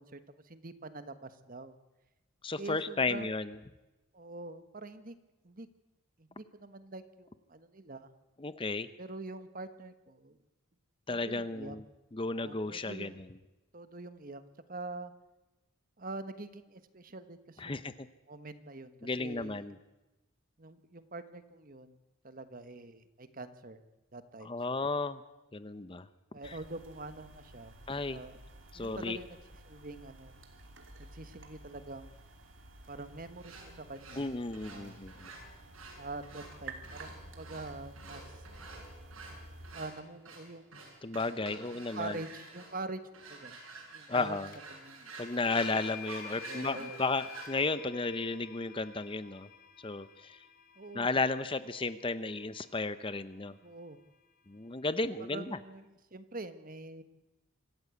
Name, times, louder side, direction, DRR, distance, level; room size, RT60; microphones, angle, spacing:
voice 1, 0.0-1.7 2.6-3.3 4.1-5.2 5.4-5.7 6.2-8.1 9.0-10.4 11.1-11.8 12.2-13.2 13.7-14.4 14.7-15.1 16.0-17.9 18.3-19.6 20.6-22.0 22.2-23.8 24.1-24.9 26.3-27.8 28.1-28.4 28.7-29.4 29.6-30.3 31.0-32.1 32.9-34.3 34.6-35.0 36.0-38.4 39.7-40.7 41.7-43.0 43.3-43.6 43.9-44.4 44.7-45.1 46.3-47.0 50.8-51.2 53.6-54.0 55.3-57.0, right 2 dB, 40° right, 11 dB, 1.3 m, -45 dB
voice 2, 2.4-3.5 8.4-8.9 11.1-11.8 12.1-13.2 17.6-18.1 19.0-19.8 24.4-25.2 25.5-26.1 26.4-26.6 27.9-28.2 28.7-29.2 34.2-35.3 41.0-42.2 44.1-44.5 45.2-49.5 49.8-50.4 50.9-53.6 54.5-55.6, left 3 dB, 25° left, 13 dB, 0.7 m, -34 dB
sound 1, 26.4-39.8, right 2 dB, 60° right, 2.9 m, -52 dB
sound 2, 33.4-47.7, right 3 dB, 85° right, 6.9 m, -49 dB
sound 3, 44.5-44.6 45.5-53.5, left 10 dB, 40° left, 1.3 m, -50 dB
25.5 x 14.5 x 8.3 m, 1.0 s
head